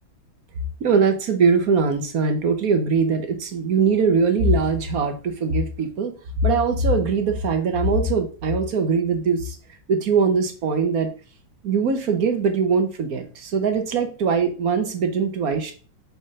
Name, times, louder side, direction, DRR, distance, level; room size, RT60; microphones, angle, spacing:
voice 1, 0.8-6.1 6.4-9.6 9.9-11.1 11.6-15.7, right 4 dB, 55° right, 6 dB, 1.2 m, -21 dB
5.8 x 3.9 x 5.3 m, 0.37 s
omnidirectional pair, 2.3 m